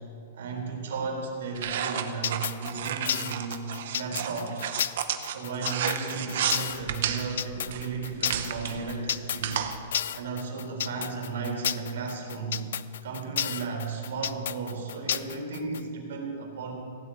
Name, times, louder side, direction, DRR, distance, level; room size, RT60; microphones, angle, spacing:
voice 1, 0.3-3.7 3.9-4.7 5.3-9.7 10.1-12.7 13.0-16.7, right 4 dB, 75° right, 1 dB, 3.7 m, -34 dB
sound 1, 1.6-9.8, right 9 dB, 55° right, 1.0 m, -32 dB
sound 2, 2.2-15.8, left 10 dB, 65° left, 0.5 m, -31 dB
16.5 x 7.8 x 8.7 m, 2.3 s
supercardioid pair, 180°, 0 cm